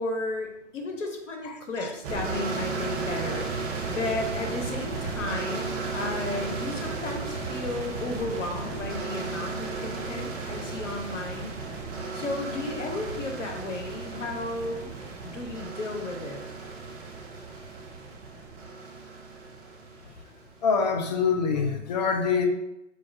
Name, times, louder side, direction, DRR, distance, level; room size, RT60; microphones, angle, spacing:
voice 1, 0.0-11.6 12.1-14.9 15.2-16.4, left 2 dB, 85° left, 3 dB, 0.9 m, -34 dB
voice 2, 1.4-1.9 20.0-20.1 20.6-22.5, left 5 dB, 40° left, 5 dB, 0.4 m, -26 dB
sound 1, 2.0-20.7, right 4 dB, 30° right, 0.6 m, -34 dB
4.4 x 2.3 x 2.6 m, 0.89 s
hypercardioid pair, 125°, 36 cm